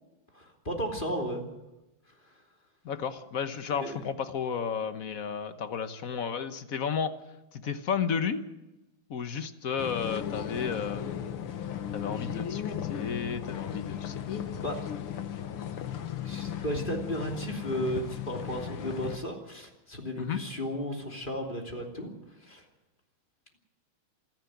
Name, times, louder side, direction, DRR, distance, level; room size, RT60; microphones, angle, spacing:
voice 1, 0.3-1.4 3.8-4.1 14.6-14.8 16.2-22.1 22.4-22.6, equal, 20° left, 1 dB, 3.1 m, -34 dB
voice 2, 2.8-7.1 7.5-8.5 9.1-11.0 11.9-14.2 20.3-20.4, left 6 dB, 50° left, 10 dB, 1.3 m, -32 dB
sound 1, 9.8-19.2, left 9 dB, 80° left, 2.1 m, -36 dB
27.0 x 11.0 x 9.3 m, 1.0 s
omnidirectional pair, 2.4 m